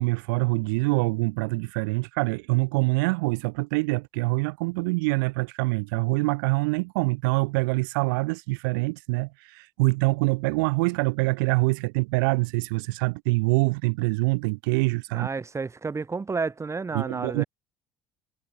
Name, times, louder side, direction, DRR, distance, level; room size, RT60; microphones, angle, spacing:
voice 1, 0.0-15.3 16.9-17.4, right 27 dB, 75° right, 4.7 m, -25 dB
voice 2, 15.1-17.5, right 4 dB, 25° right, 5.6 m, -31 dB
hypercardioid pair, 60°, 11 cm